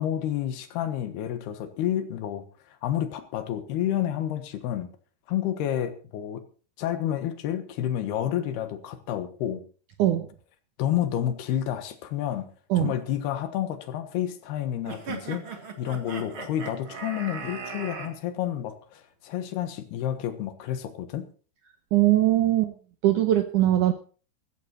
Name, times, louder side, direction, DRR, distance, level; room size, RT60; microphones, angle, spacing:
voice 1, 0.0-2.4 2.8-4.9 5.3-6.4 6.8-9.6 10.8-12.5 12.8-21.3, left 11 dB, 70° left, 9 dB, 3.3 m, -30 dB
sound 1, 14.9-18.1, right 5 dB, 40° right, 2.3 m, -37 dB
voice 2, 21.9-22.7 23.0-23.9, right 13 dB, 85° right, 8 dB, 1.7 m, -21 dB
15.0 x 14.5 x 4.3 m, 0.38 s
omnidirectional pair, 5.0 m